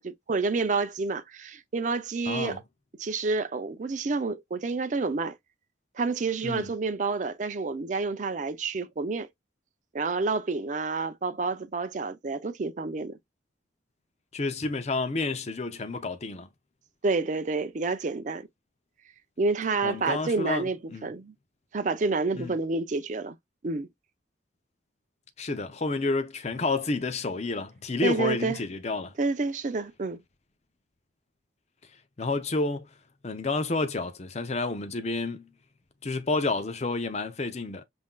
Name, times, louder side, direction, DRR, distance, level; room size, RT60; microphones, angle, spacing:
voice 1, 0.0-2.6 3.0-5.3 6.0-9.3 9.9-13.2 17.0-18.5 19.4-21.3 21.7-23.4 23.6-23.9 28.0-28.6 29.2-30.2, right 3 dB, 40° right, 0.5 m, -29 dB
voice 2, 2.3-2.6 6.4-6.7 14.3-16.5 19.8-21.1 22.4-22.5 25.4-29.1 32.2-32.9 33.2-35.5 36.0-37.8, left 3 dB, 35° left, 0.6 m, -30 dB
5.6 x 2.6 x 2.3 m
head